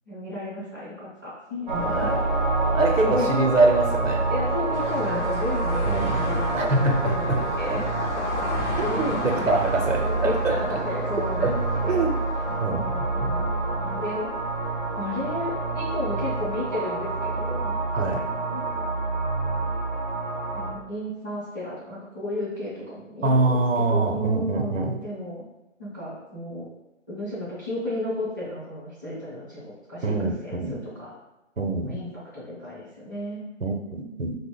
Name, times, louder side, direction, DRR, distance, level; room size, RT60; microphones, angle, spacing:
voice 1, 0.1-2.1 3.0-3.3 4.3-7.8 8.9-9.0 9.3-11.6 11.8-12.0 12.8-14.3 15.0-18.9 20.5-25.4 25.8-26.7 27.1-31.1 31.8-33.4, left 1 dB, 15° left, -12 dB, 0.6 m, -33 dB
sound 1, 1.7-20.7, right 2 dB, 40° right, 0.5 m, -27 dB
voice 2, 1.9-2.2 2.7-4.3 5.9-6.2 6.5-7.4 7.7-7.8 8.4-8.5 8.8-10.6 11.4-11.6 11.9-12.2 12.6-13.3 17.9-18.2 23.2-25.0 30.0-30.8 31.6-32.0 33.6-34.4, right 3 dB, 75° right, 3 dB, 0.7 m, -24 dB
sound 2, 4.7-12.6, left 2 dB, 60° left, 0.7 m, -34 dB
2.8 x 2.0 x 3.7 m, 0.96 s
figure-of-eight pair, 150°, 39 cm